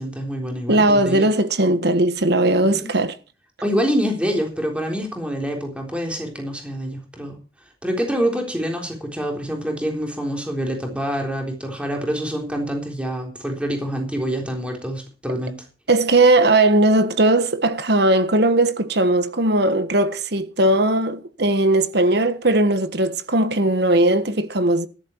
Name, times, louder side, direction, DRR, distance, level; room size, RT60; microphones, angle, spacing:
voice 1, 0.0-1.3 2.6-2.9 3.6-7.4 7.8-15.6, equal, 5° right, 3.7 m, -26 dB
voice 2, 0.7-3.2 15.9-24.9, right 2 dB, 60° right, 1.4 m, -18 dB
13.5 x 11.5 x 4.6 m
head